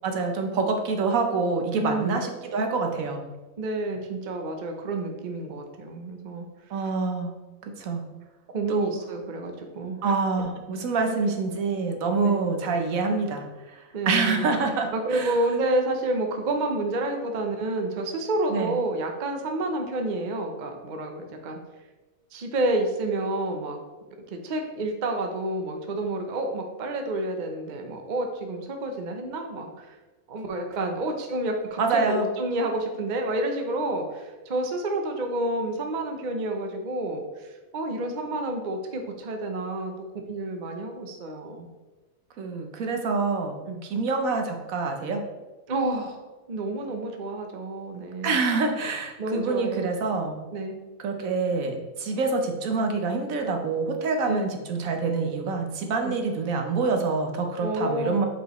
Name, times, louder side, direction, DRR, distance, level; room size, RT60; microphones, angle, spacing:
voice 1, 0.0-3.2 6.7-7.3 7.6-8.0 8.7-8.9 10.0-15.3 18.5-18.7 31.8-32.3 42.4-45.3 48.2-50.4 51.0-58.3, right 4 dB, 70° right, 4 dB, 1.2 m, -26 dB
voice 2, 1.8-2.3 3.6-6.5 8.5-10.1 12.2-12.4 13.9-14.5 14.9-21.6 22.3-23.8 24.3-30.0 30.3-39.9 40.3-41.7 43.7-43.8 45.7-48.4 49.2-49.9 50.5-50.8 54.3-54.5 56.0-56.2 57.6-58.2, right 2 dB, 45° right, 4 dB, 0.7 m, -29 dB
8.1 x 4.7 x 3.0 m, 1.2 s
omnidirectional pair, 1.5 m